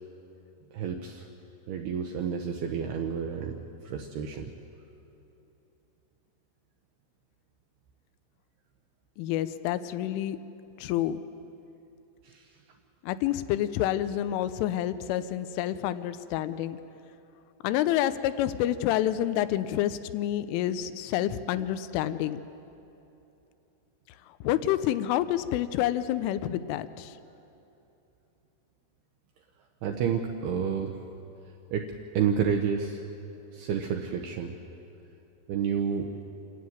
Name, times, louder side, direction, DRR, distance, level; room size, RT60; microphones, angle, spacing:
voice 1, 0.7-1.3 1.7-3.6 3.8-4.5 12.2-12.5 29.8-31.0 31.7-33.0 33.5-34.6 35.5-36.1, right 7 dB, 80° right, 3 dB, 2.3 m, -30 dB
voice 2, 9.2-10.4 10.8-11.2 13.0-16.8 17.6-22.4 24.4-27.2, left 12 dB, 80° left, 13 dB, 3.1 m, -28 dB
27.0 x 13.0 x 9.3 m, 2.8 s
omnidirectional pair, 5.8 m